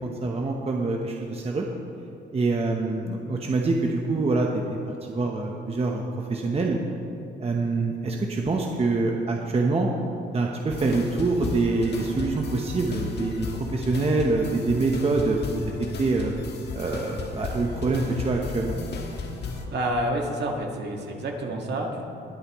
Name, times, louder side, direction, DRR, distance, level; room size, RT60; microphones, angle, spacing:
voice 1, 0.0-1.6 2.3-4.6 5.1-6.0 6.3-6.8 7.4-9.9 10.3-13.5 13.7-16.3 16.7-18.8, right 3 dB, 30° right, 0 dB, 1.0 m, -25 dB
sound 1, 10.7-19.6, left 3 dB, 60° left, 1.5 m, -34 dB
voice 2, 19.7-22.0, right 1 dB, 60° right, 1 dB, 1.9 m, -28 dB
21.0 x 8.1 x 3.1 m, 2.7 s
cardioid pair, 90°, 20 cm